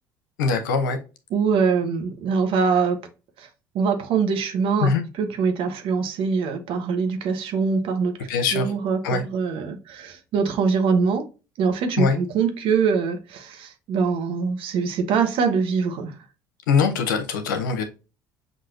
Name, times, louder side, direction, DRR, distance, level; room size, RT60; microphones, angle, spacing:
voice 1, 0.4-1.0 4.8-5.0 8.3-8.7 9.0-9.2 12.0-12.2 16.7-17.8, left 5 dB, 85° left, 0.7 m, -22 dB
voice 2, 1.3-3.0 3.4-3.5 3.7-4.9 5.2-8.1 8.5-11.3 11.6-16.1, right 5 dB, 60° right, 0.9 m, -23 dB
6.0 x 2.6 x 2.5 m
hypercardioid pair, 65°, 10 cm